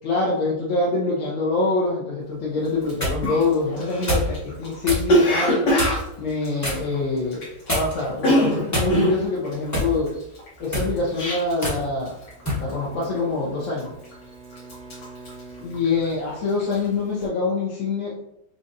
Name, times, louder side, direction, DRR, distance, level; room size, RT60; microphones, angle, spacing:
voice 1, 0.0-5.6 6.2-10.1 10.6-12.1 12.6-13.9 15.6-18.1, left 3 dB, 60° left, -5 dB, 1.0 m, -25 dB
sound 1, 2.6-3.2 4.1-4.3 4.8-5.1 5.7-6.1 6.6-6.8 7.7-8.1 8.7-9.2 9.7-9.9 10.6-10.9 11.6-11.8 12.4-12.6, left 1 dB, 15° left, 0.6 m, -25 dB
Cough, 2.8-2.9 3.2-7.7 7.9-11.8 12.1-12.4 12.7-13.2 13.6-14.2 14.5-16.2 16.5-16.8, equal, 85° left, 1.7 m, -23 dB
Bowed string instrument, 12.2-16.5, right 3 dB, 65° right, 0.8 m, -46 dB
5.1 x 2.4 x 2.6 m, 0.79 s
omnidirectional pair, 1.8 m